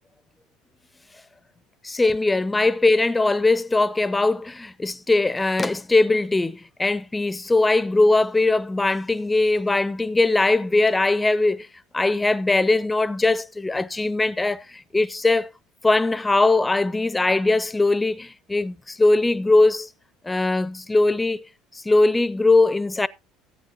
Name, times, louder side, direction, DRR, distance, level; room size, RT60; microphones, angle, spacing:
voice 1, 1.8-11.7 11.9-15.5 15.8-19.9 20.2-21.5 21.7-23.1, left 2 dB, 15° left, 0.5 m, -20 dB
14.0 x 8.9 x 2.8 m
figure-of-eight pair, 60°, 0 cm